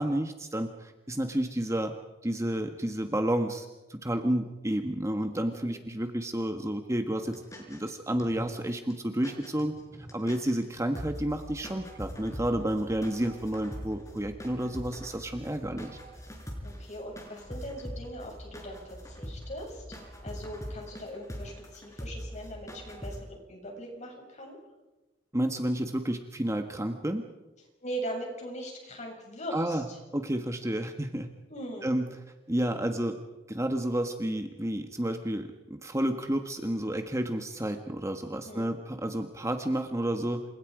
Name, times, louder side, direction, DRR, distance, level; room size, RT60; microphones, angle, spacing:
voice 1, 0.0-1.9 2.2-7.3 7.7-15.9 25.3-27.2 29.5-29.8 30.1-31.3 31.8-32.1 32.5-33.2 33.5-40.4, right 1 dB, 15° right, 5 dB, 1.5 m, -30 dB
sound 1, 7.2-7.9 8.2-8.6 8.9-9.0 9.2-10.7 11.0-23.2, equal, 15° left, 4.8 m, -43 dB
voice 2, 16.6-19.8 20.2-24.6 27.8-30.0 31.5-31.9 38.3-38.7, equal, 40° left, 1 dB, 7.3 m, -40 dB
29.0 x 26.0 x 5.1 m, 1.1 s
head